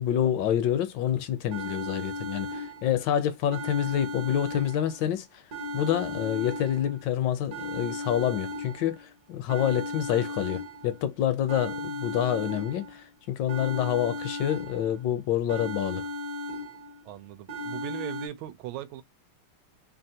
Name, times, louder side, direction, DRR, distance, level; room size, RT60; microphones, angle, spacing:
voice 1, 0.0-5.4 5.7-16.1, left 10 dB, 75° left, 1.1 m, -27 dB
sound 1, 1.5-3.1 3.5-5.1 5.5-7.1 7.5-9.1 9.5-11.1 11.5-13.1 13.5-15.1 15.5-17.1 17.5-18.3, left 1 dB, 60° right, 1.2 m, -36 dB
voice 2, 17.0-19.0, right 13 dB, 85° right, 1.4 m, -39 dB
3.3 x 2.4 x 2.7 m
omnidirectional pair, 2.2 m